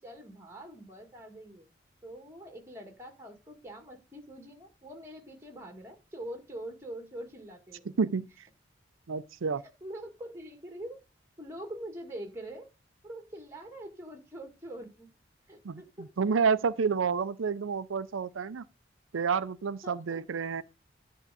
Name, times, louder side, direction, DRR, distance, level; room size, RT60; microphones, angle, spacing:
voice 1, 0.0-1.7 2.0-7.9 9.8-11.0 11.4-12.7 13.0-15.1 15.5-16.1 19.8-20.0, right 1 dB, 15° right, 1.8 m, -44 dB
voice 2, 9.1-9.6 15.6-15.8 16.2-18.6 19.1-20.6, right 5 dB, 80° right, 0.5 m, -29 dB
11.0 x 3.7 x 6.7 m
head